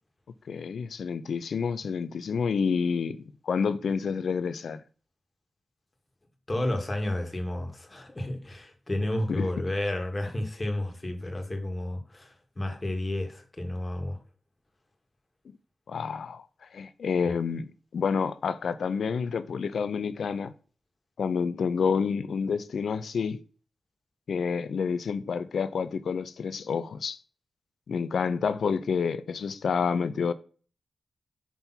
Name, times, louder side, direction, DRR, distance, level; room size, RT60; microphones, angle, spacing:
voice 1, 0.5-4.8 9.3-9.5 15.9-16.4 16.7-20.5 21.2-23.4 24.3-27.2 27.9-30.3, left 6 dB, 80° left, 0.5 m, -29 dB
voice 2, 6.5-14.2, left 1 dB, 30° left, 1.9 m, -31 dB
6.2 x 3.4 x 5.7 m
cardioid pair, 60°, 0 cm